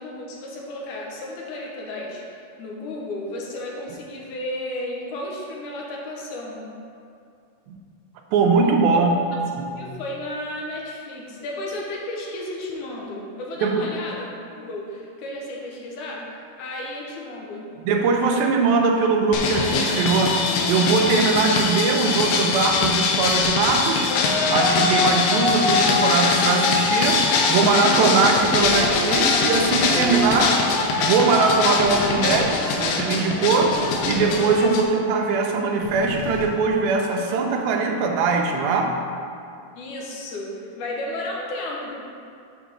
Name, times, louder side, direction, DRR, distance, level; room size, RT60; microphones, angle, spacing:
voice 1, 0.0-6.7 8.9-9.0 9.8-17.7 34.9-35.1 39.8-42.0, left 1 dB, 65° left, -2 dB, 2.2 m, -33 dB
voice 2, 8.3-9.1 9.6-9.7 13.6-13.8 17.8-20.4 20.7-24.1 24.5-30.6 31.0-33.8 34.1-39.0, right 4 dB, 85° right, 2 dB, 2.5 m, -21 dB
sound 1, 19.3-34.8, left 4 dB, 85° left, 2.7 m, -22 dB
sound 2, 28.3-29.0 29.4-30.4 30.7-30.8 31.0-31.1 31.4-31.5 31.7-34.4 34.7-34.9 35.2-35.3 35.5-36.9, left 3 dB, 50° left, 1.3 m, -35 dB
7.1 x 4.7 x 6.1 m, 2.5 s
omnidirectional pair, 4.3 m